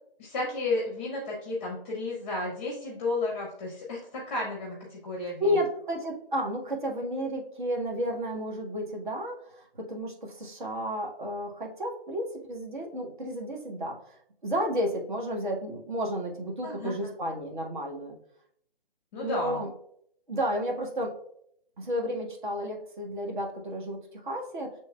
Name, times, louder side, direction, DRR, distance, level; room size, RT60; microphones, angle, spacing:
voice 1, 0.2-5.5 16.6-17.1 19.1-19.6, left 2 dB, 10° left, -2 dB, 0.7 m, -32 dB
voice 2, 5.4-18.1 19.2-19.7 20.3-21.1 21.8-24.7, equal, 55° right, 1 dB, 1.2 m, -32 dB
6.8 x 3.2 x 2.3 m, 0.68 s
figure-of-eight pair, 145°, 30 cm